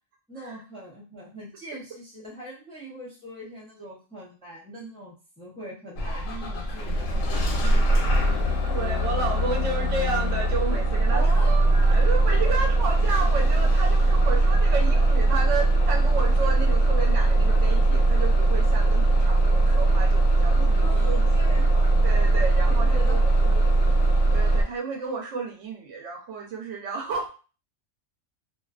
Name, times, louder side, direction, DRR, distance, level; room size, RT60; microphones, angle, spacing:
voice 1, 0.3-8.0 11.1-11.7 12.3-12.6 20.5-21.7 22.8-23.9, right 1 dB, 5° left, -5 dB, 0.5 m, -41 dB
Bus / Engine starting, 6.0-24.6, right 2 dB, 85° left, 1.0 m, -20 dB
voice 2, 8.7-11.3 11.7-21.2 21.5-23.5 24.3-27.3, right 4 dB, 70° right, 0 dB, 1.0 m, -32 dB
2.4 x 2.2 x 2.3 m, 0.34 s
omnidirectional pair, 1.3 m